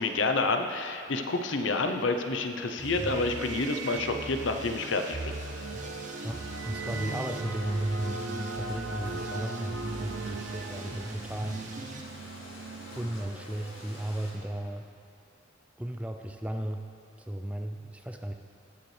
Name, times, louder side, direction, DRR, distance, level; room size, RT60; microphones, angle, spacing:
voice 1, 0.0-5.3, left 3 dB, 70° left, 6 dB, 0.7 m, -29 dB
sound 1, 1.4-14.9, right 4 dB, 85° right, 0.5 m, -41 dB
sound 2, 2.8-12.0, right 2 dB, 40° right, 0.8 m, -40 dB
sound 3, 5.3-14.3, left 1 dB, 85° left, 2.3 m, -48 dB
voice 2, 6.2-11.6 12.9-14.9 15.8-16.9 17.2-18.4, right 1 dB, 5° right, 5 dB, 0.4 m, -35 dB
18.5 x 6.7 x 3.3 m, 2.5 s
head